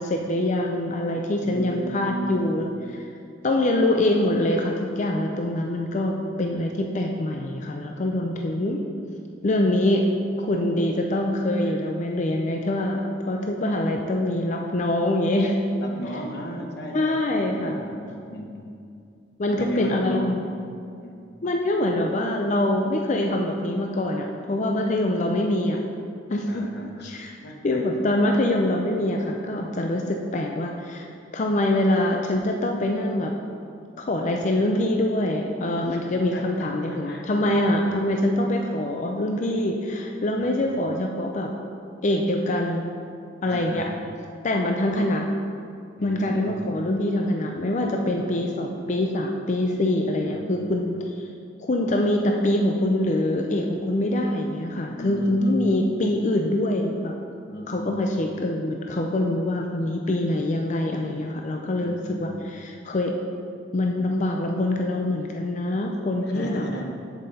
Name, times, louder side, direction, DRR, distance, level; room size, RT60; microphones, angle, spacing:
voice 1, 0.0-2.7 3.4-8.8 9.4-10.1 10.4-15.5 16.9-17.8 19.4-20.4 21.4-25.8 26.3-26.7 27.0-27.3 27.6-31.1 31.3-33.3 34.0-41.5 42.0-42.9 43.4-43.9 44.4-45.3 46.0-51.3 51.6-57.1 57.7-63.1 63.7-66.6, left 1 dB, 40° left, 2 dB, 0.5 m, -24 dB
voice 2, 1.4-2.6 15.8-18.8 19.5-20.4 21.0-21.2 26.5-27.8 36.3-38.1 40.3-40.7 43.4-44.0 46.0-46.6 48.1-48.3 50.0-50.9 54.9-55.8 57.5-58.0 61.8-62.5 66.3-66.9, equal, 60° left, 2 dB, 1.1 m, -36 dB
7.6 x 7.1 x 4.1 m, 2.4 s
head